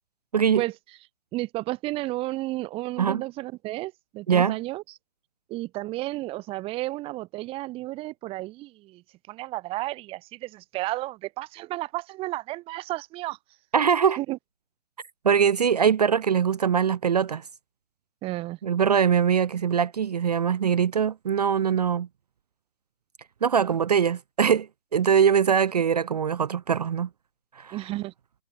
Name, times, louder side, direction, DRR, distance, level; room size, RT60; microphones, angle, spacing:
voice 1, 1.3-4.8 5.5-13.4 14.1-14.4 18.2-18.6 27.7-28.1, right 18 dB, 15° right, 1.5 m, -32 dB
voice 2, 4.3-4.6 13.7-14.2 15.2-17.4 18.6-22.1 23.4-27.1 27.6-27.8, right 7 dB, 40° right, 0.4 m, -22 dB
hypercardioid pair, 145°, 34 cm